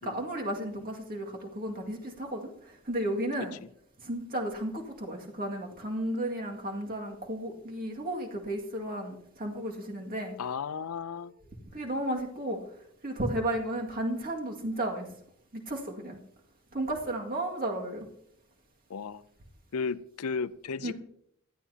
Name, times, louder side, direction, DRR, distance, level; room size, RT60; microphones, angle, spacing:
voice 1, 0.0-2.5 2.9-3.6 4.0-10.3 11.7-12.6 13.0-15.1 15.5-16.2 16.7-18.1 20.8-20.9, right 1 dB, 45° right, 1 dB, 2.1 m, -33 dB
voice 2, 10.4-11.3 18.9-19.2 19.7-20.9, left 5 dB, 85° left, 15 dB, 0.5 m, -34 dB
18.0 x 12.5 x 2.8 m, 0.71 s
head